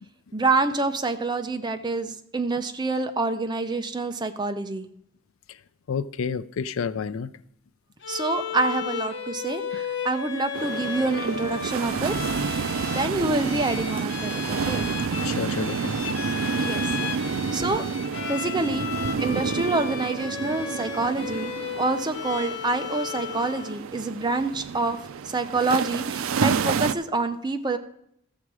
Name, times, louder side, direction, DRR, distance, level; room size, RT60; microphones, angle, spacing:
voice 1, 0.3-4.9 8.1-12.5 12.9-14.9 16.6-16.8 17.2-17.8 18.3-18.9 19.2-21.5 21.8-25.0 25.2-27.8, right 3 dB, 20° right, 0.7 m, -27 dB
voice 2, 5.9-7.3 15.2-16.2, left 6 dB, 90° left, 0.4 m, -30 dB
Bowed string instrument, 8.0-23.8, left 7 dB, 60° left, 0.9 m, -35 dB
sound 1, 10.5-26.9, right 6 dB, 85° right, 0.4 m, -29 dB
13.5 x 7.2 x 4.8 m
head